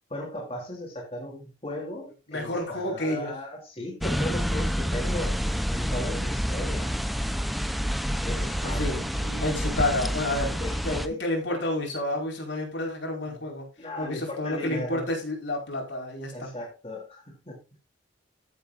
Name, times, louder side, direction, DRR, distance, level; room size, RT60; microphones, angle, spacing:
voice 1, 0.1-5.4 5.7-6.9 8.2-9.6 10.6-11.2 13.2-13.4 13.8-15.1 16.3-17.6, left 1 dB, 30° left, 3.2 m, -37 dB
voice 2, 2.3-3.3 8.6-9.0 9.4-13.7 14.0-16.5, left 1 dB, 70° left, 4.9 m, -30 dB
sound 1, 4.0-11.1, equal, ahead, 0.6 m, -28 dB
14.0 x 8.0 x 2.6 m
head